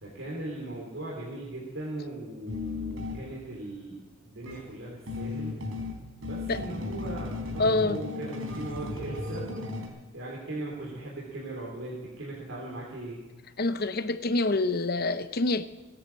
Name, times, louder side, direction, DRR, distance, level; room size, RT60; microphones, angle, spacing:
voice 1, 0.0-5.5 6.2-9.5 10.1-13.2, right 1 dB, 70° right, -5 dB, 3.8 m, -39 dB
sound 1, 2.5-3.5 4.4-9.9, left 2 dB, 85° right, 3.7 m, -35 dB
voice 2, 7.6-8.0 13.6-15.6, left 2 dB, 45° left, 12 dB, 0.8 m, -26 dB
18.0 x 10.0 x 7.5 m, 1.2 s
head